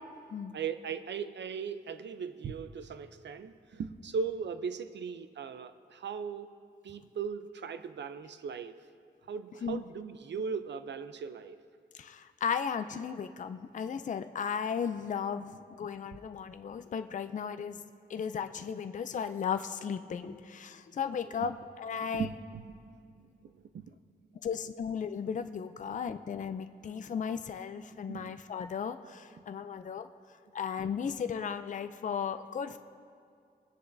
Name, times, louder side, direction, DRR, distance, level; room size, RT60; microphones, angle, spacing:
voice 1, 0.5-6.5 6.8-8.8 9.3-11.6 21.4-21.5 22.1-22.8 23.2-23.9 25.9-26.0 28.1-28.4, right 6 dB, 80° right, 11 dB, 0.5 m, -38 dB
voice 2, 11.9-17.8 18.1-22.3 24.4-30.1 30.5-32.8, left 7 dB, 45° left, 9 dB, 0.4 m, -35 dB
23.0 x 9.9 x 2.6 m, 2.3 s
wide cardioid pair, 165°, 18 cm